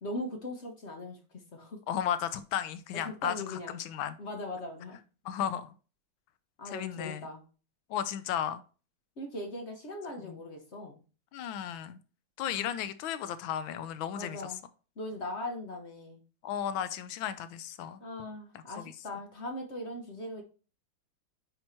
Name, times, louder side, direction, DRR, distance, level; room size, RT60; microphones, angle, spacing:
voice 1, 0.0-1.8 3.0-3.7 4.2-5.0 6.6-7.4 9.2-11.0 12.5-12.8 14.1-14.6 15.0-16.2 18.0-20.4, left 1 dB, 45° left, 0.9 m, -40 dB
voice 2, 1.9-4.2 5.2-5.7 6.7-7.3 7.9-8.6 10.2-10.4 11.3-12.0 12.4-14.4 16.4-18.0 18.8-18.9, left 9 dB, 80° left, 1.4 m, -34 dB
8.7 x 3.0 x 4.3 m
omnidirectional pair, 2.2 m